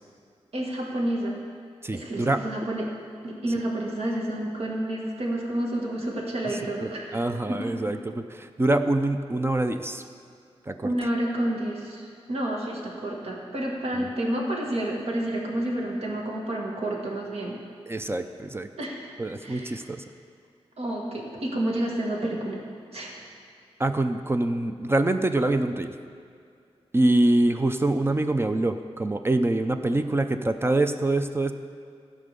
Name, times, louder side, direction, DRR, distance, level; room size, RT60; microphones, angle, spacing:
voice 1, 0.5-1.4 1.9-2.9 3.2-7.2 7.5-7.8 10.8-17.6 18.8-19.1 19.4-19.8 20.8-22.6 22.9-23.2, right 1 dB, 70° right, -2 dB, 1.9 m, -29 dB
voice 2, 1.8-2.4 6.8-10.0 10.7-10.9 14.0-14.1 17.9-18.7 19.2-20.0 23.8-26.0 26.9-31.5, right 2 dB, 20° right, 7 dB, 0.5 m, -25 dB
14.5 x 5.1 x 6.8 m, 2.3 s
wide cardioid pair, 120°, 11 cm